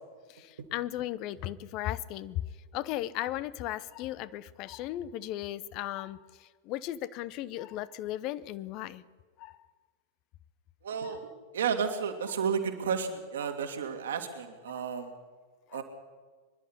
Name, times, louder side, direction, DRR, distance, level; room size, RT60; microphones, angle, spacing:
voice 1, 0.3-2.4 2.7-9.0 9.4-9.6 11.0-11.2 13.4-13.5 14.7-14.9 15.7-15.8, left 14 dB, 40° left, 17 dB, 0.7 m, -36 dB
voice 2, 10.8-11.3 11.5-15.1 15.7-15.8, right 6 dB, 65° right, 5 dB, 2.3 m, -32 dB
24.0 x 11.5 x 10.0 m, 1.5 s
figure-of-eight pair, 90°, 0 cm